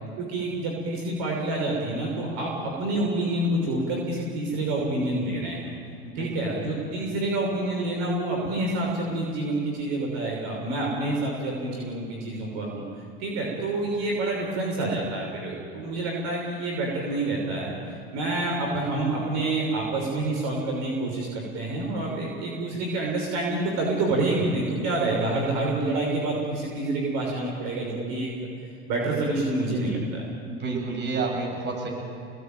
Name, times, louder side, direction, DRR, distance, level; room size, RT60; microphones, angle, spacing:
voice 1, 0.2-5.6 6.1-12.8 13.2-17.7 18.1-28.3 28.9-30.2, right 2 dB, 60° right, -1 dB, 6.2 m, -27 dB
voice 2, 6.0-6.6 30.4-31.9, right 3 dB, 35° right, 1 dB, 7.9 m, -30 dB
26.5 x 19.5 x 9.2 m, 2.5 s
hypercardioid pair, 85°, 30 cm